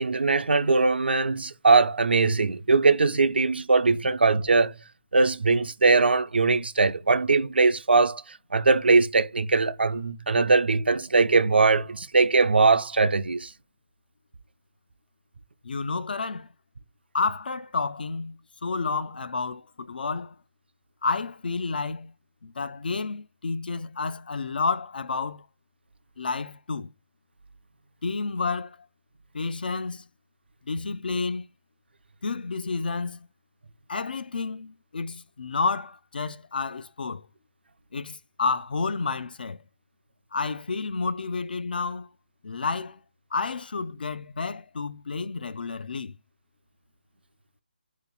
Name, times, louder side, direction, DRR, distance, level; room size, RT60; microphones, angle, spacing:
voice 1, 0.0-4.8 5.1-8.2 8.5-13.5, right 3 dB, 70° right, 0.5 m, -21 dB
voice 2, 15.6-16.5 17.1-20.4 21.0-22.1 22.4-25.5 26.2-26.9 28.0-28.8 29.3-30.0 30.7-31.5 32.2-33.3 33.9-37.3 37.9-39.6 40.3-42.1 42.4-43.0 43.3-46.1, left 4 dB, 60° left, 0.4 m, -30 dB
2.9 x 2.9 x 3.9 m
figure-of-eight pair, 150°, 6 cm